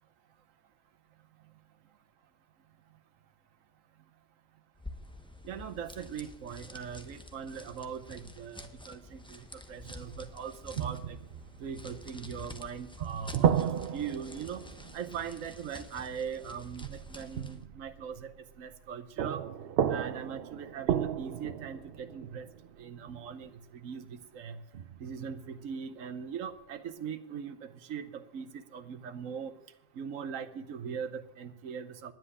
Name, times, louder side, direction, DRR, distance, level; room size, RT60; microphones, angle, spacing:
sound 1, 4.7-17.6, left 1 dB, 5° left, 0.7 m, -49 dB
voice 1, 5.4-11.2 11.6-14.6 14.9-18.3 18.6-19.4 19.9-22.5 22.8-24.6 25.0-29.5 29.9-32.1, right 7 dB, 90° right, 8 dB, 1.2 m, -40 dB
sound 2, 9.8-10.4 10.8-12.6 13.0-16.0 16.8-18.9 19.2-23.5 24.7-25.4, right 9 dB, 60° right, 0.7 m, -34 dB
10.0 x 7.9 x 9.8 m, 0.91 s
omnidirectional pair, 1.3 m